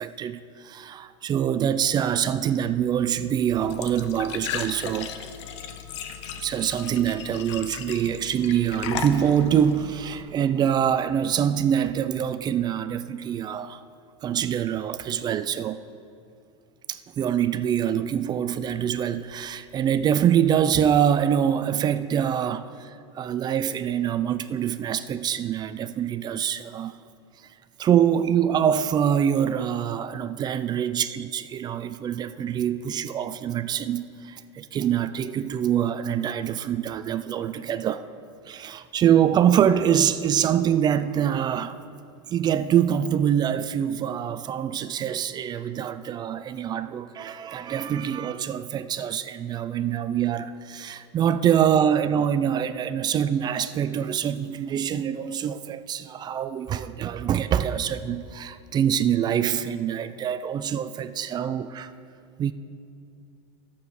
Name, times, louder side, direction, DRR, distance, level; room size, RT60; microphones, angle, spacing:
voice 1, 0.0-5.1 6.4-13.8 14.2-15.8 16.9-22.9 23.1-26.9 27.8-38.1 38.5-41.9 42.3-61.9 62.4-62.5, right 9 dB, 25° right, 0.4 m, -25 dB
Glass / Trickle dribble / Fill (with liquid), 3.5-10.2, left 8 dB, 75° left, 0.9 m, -36 dB
12.5 x 7.1 x 6.4 m
supercardioid pair, 120°, 16 cm